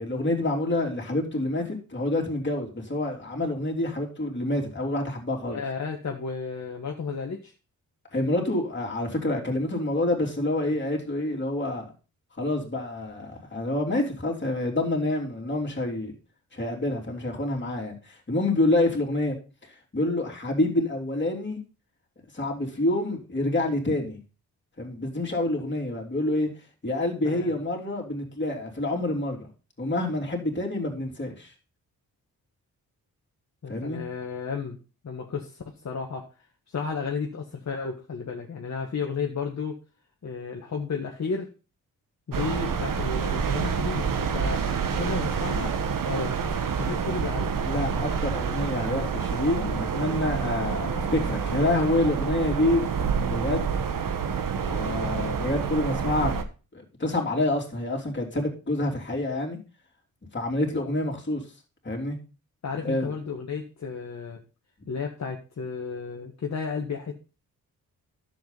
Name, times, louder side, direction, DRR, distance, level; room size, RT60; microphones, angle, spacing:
voice 1, 0.0-5.6 8.1-11.8 12.4-16.1 16.5-19.4 19.6-21.6 22.3-24.2 24.8-26.5 26.8-29.5 29.8-31.5 33.7-34.0 47.6-52.8 53.3-53.7 54.6-56.4 56.7-59.6 60.3-61.4 61.8-62.2 62.8-63.1, left 1 dB, 30° left, 3.2 m, -27 dB
voice 2, 5.5-7.5 27.2-27.6 33.6-34.8 35.0-36.3 36.7-39.8 40.2-41.5 42.3-45.8 46.0-46.3 46.8-47.5 62.6-64.4 64.9-67.1, left 5 dB, 50° left, 1.5 m, -33 dB
sound 1, 42.3-56.4, right 6 dB, 65° right, 1.3 m, -28 dB
10.5 x 7.5 x 4.0 m
cardioid pair, 75°, 36 cm